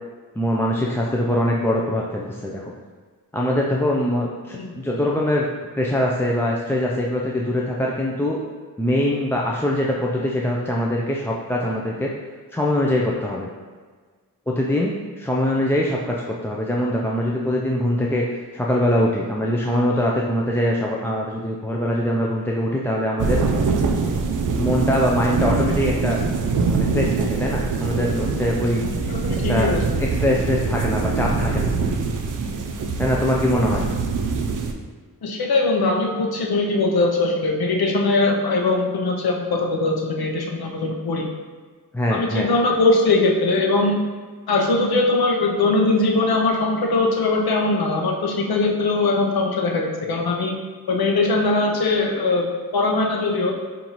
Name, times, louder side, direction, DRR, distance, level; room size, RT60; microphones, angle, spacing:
voice 1, 0.4-2.7 3.3-5.5 5.8-8.4 8.8-12.1 12.5-13.5 14.5-18.2 18.5-23.4 24.6-26.2 26.7-28.8 29.5-29.7 30.0-31.7 33.0-33.8 41.9-42.5, left 1 dB, 5° left, -3 dB, 0.3 m, -22 dB
sound 1, 23.2-34.7, right 4 dB, 60° right, 0.5 m, -23 dB
voice 2, 29.1-29.8 35.2-41.2 42.1-44.0 44.5-50.5 50.9-52.5 52.7-53.6, left 3 dB, 85° left, 1 dB, 0.7 m, -21 dB
5.4 x 2.6 x 3.0 m, 1.5 s
wide cardioid pair, 65°, 36 cm